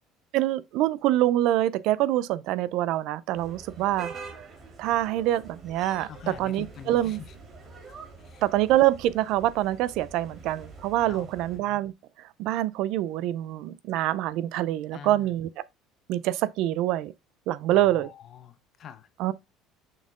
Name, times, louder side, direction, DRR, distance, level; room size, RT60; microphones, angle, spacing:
voice 1, 0.3-4.1 4.8-6.1 6.4-7.2 8.4-11.9 12.4-15.5 16.1-17.1 17.5-18.1 19.2-19.3, right 14 dB, 65° right, 0.5 m, -25 dB
sound 1, 3.3-11.6, right 4 dB, 25° right, 2.4 m, -45 dB
voice 2, 6.1-7.3 8.2-8.4 11.1-11.3 14.9-15.4 17.7-19.1, left 8 dB, 40° left, 0.7 m, -44 dB
6.5 x 4.3 x 3.7 m
cardioid pair, 155°, 0 cm